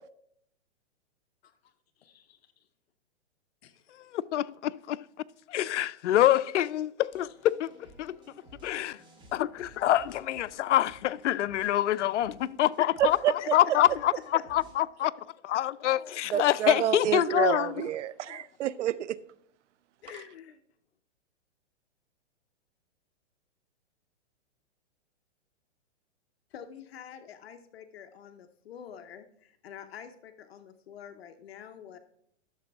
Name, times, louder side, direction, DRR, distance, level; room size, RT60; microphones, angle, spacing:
voice 1, 2.0-2.4 3.6-3.8 12.8-12.9 13.4-13.5 17.4-17.5 20.0-20.6 26.5-32.0, left 8 dB, 60° left, 0.8 m, -47 dB
voice 2, 4.1-5.0 5.5-7.7 8.0-8.2 8.6-9.0 9.3-13.2 13.5-15.1 15.4-17.9 18.3-18.4, left 13 dB, 85° left, 0.5 m, -26 dB
sound 1, 7.1-14.8, right 1 dB, 10° right, 1.1 m, -55 dB
voice 3, 13.0-13.3 16.3-19.2, right 11 dB, 90° right, 0.5 m, -28 dB
12.0 x 6.7 x 3.5 m
hypercardioid pair, 155°, 35 cm